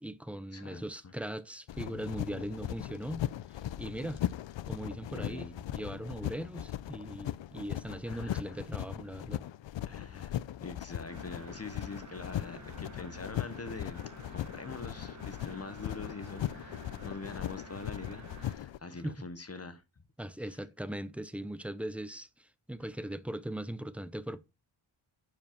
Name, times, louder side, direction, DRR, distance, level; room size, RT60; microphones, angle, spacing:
voice 1, 0.0-4.3 4.7-9.4 18.9-19.2 20.2-24.4, right 1 dB, 5° right, 0.4 m, -40 dB
voice 2, 0.5-1.1 5.1-5.6 8.1-8.6 9.9-19.8 20.4-20.5, left 3 dB, 30° left, 0.9 m, -44 dB
sound 1, 1.7-18.8, left 12 dB, 70° left, 0.5 m, -39 dB
sound 2, 11.1-18.5, right 3 dB, 35° right, 1.5 m, -51 dB
10.5 x 4.9 x 4.4 m
wide cardioid pair, 155°, 48 cm